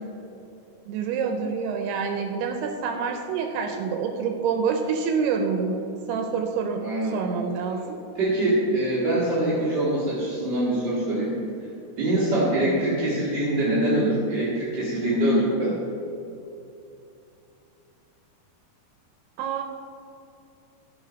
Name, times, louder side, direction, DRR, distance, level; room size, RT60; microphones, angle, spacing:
voice 1, 0.9-6.8 7.1-8.0 12.6-12.8 19.4-19.6, right 6 dB, 85° right, 4 dB, 2.6 m, -27 dB
voice 2, 6.8-7.2 8.1-11.3 12.0-15.8, right 1 dB, 45° right, -8 dB, 1.5 m, -24 dB
11.5 x 5.7 x 5.1 m, 2.7 s
omnidirectional pair, 4.6 m